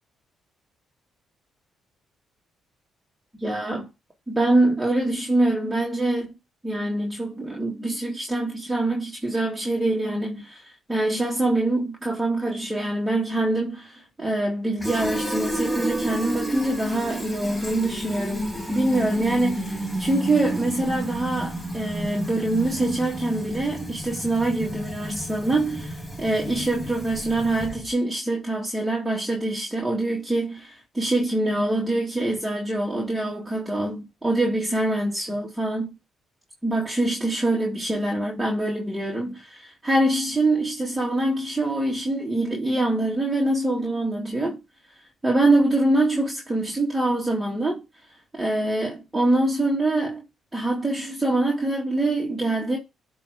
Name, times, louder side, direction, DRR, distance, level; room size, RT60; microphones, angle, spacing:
voice 1, 3.4-3.9 4.3-6.3 6.6-35.9 36.6-44.6 45.2-47.8 48.3-50.2 50.5-52.8, right 2 dB, 10° right, 2.1 m, -24 dB
Fill (with liquid), 14.8-27.9, equal, 10° left, 5.0 m, -31 dB
8.4 x 3.1 x 4.9 m
cardioid pair, 90°, 0 cm